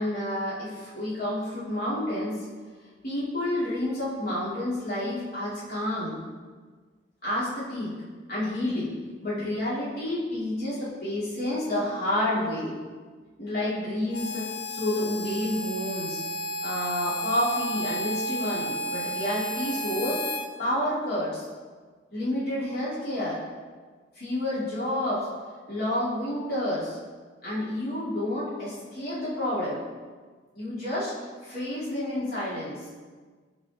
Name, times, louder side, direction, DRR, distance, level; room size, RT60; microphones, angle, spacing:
voice 1, 0.0-2.4 3.0-6.2 7.2-7.9 8.3-8.9 9.2-12.7 13.4-16.2 16.6-20.2 20.6-21.4 22.1-23.4 24.1-25.3 25.7-27.0 27.4-29.8 30.5-31.1 31.4-32.8, left 1 dB, 50° left, -9 dB, 2.9 m, -29 dB
Harmonica, 14.1-20.5, equal, 70° left, 0.8 m, -32 dB
13.0 x 5.1 x 3.7 m, 1.5 s
head